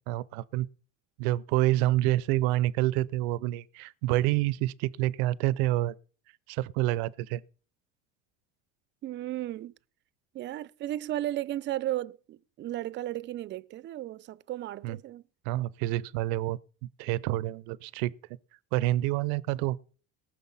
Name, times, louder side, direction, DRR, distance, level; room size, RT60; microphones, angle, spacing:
voice 1, 0.1-0.7 1.2-6.0 6.5-7.4 14.8-15.0 15.5-16.6 17.0-18.1 18.7-19.8, right 16 dB, 90° right, 0.5 m, -27 dB
voice 2, 9.0-9.7 10.3-15.2, right 14 dB, 35° right, 0.5 m, -34 dB
18.5 x 6.6 x 5.5 m
cardioid pair, 120°, 30 cm